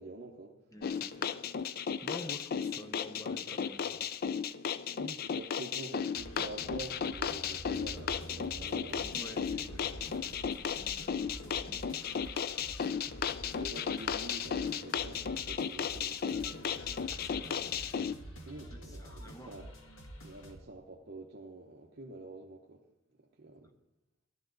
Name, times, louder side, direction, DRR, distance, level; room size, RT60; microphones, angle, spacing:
voice 1, 0.0-0.6 4.9-9.9 13.6-17.1 18.5-19.7 20.2-22.8 23.2-23.7, right 2 dB, 50° right, 1 dB, 0.9 m, -47 dB
voice 2, 0.7-1.3 1.6-4.3 9.1-12.2 12.6-13.3 17.1-18.2 18.8-19.5, left 1 dB, 15° left, 7 dB, 0.7 m, -50 dB
sound 1, 0.8-18.1, left 7 dB, 45° left, 0.3 m, -35 dB
sound 2, 6.2-20.6, equal, 70° left, 1.7 m, -48 dB
13.5 x 12.0 x 3.9 m, 0.91 s
head